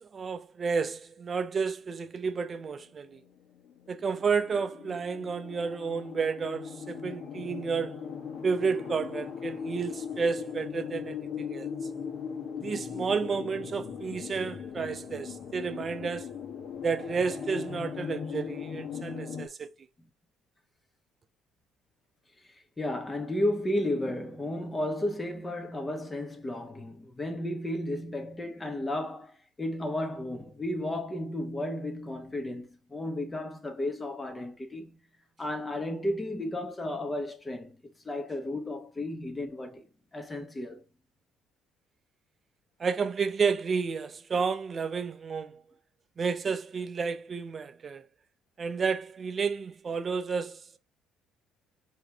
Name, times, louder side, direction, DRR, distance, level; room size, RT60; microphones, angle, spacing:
voice 1, 0.0-3.2 3.9-8.0 8.4-11.7 12.6-16.3 16.8-19.7 42.8-45.6 46.2-48.0 48.6-50.8, right 5 dB, 40° right, 0.7 m, -31 dB
sound 1, 2.6-19.5, left 7 dB, 55° left, 1.5 m, -39 dB
voice 2, 22.4-35.0 35.4-37.8 38.0-39.8 40.1-40.8, left 1 dB, 20° left, 1.2 m, -33 dB
4.8 x 3.1 x 3.5 m
hypercardioid pair, 65°, 0 cm